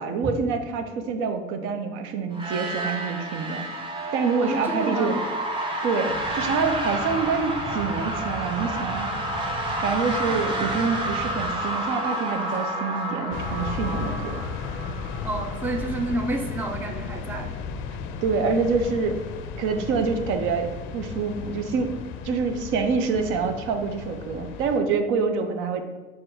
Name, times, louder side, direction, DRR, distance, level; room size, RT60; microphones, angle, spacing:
voice 1, 0.0-3.6 4.1-5.2 5.8-9.1 9.8-14.5 18.2-19.2 19.6-20.7 20.9-21.9 22.2-25.8, right 5 dB, 80° right, 7 dB, 0.5 m, -26 dB
sound 1, 2.3-16.0, right 1 dB, 25° right, 0.7 m, -30 dB
voice 2, 4.4-5.2 15.2-17.5, right 2 dB, 10° right, 3 dB, 0.3 m, -29 dB
sound 2, 6.1-11.5, right 2 dB, 45° right, 1.0 m, -38 dB
sound 3, 13.3-24.8, left 5 dB, 85° left, 0.4 m, -35 dB
5.0 x 2.2 x 4.5 m, 1.2 s
cardioid pair, 140°, 20 cm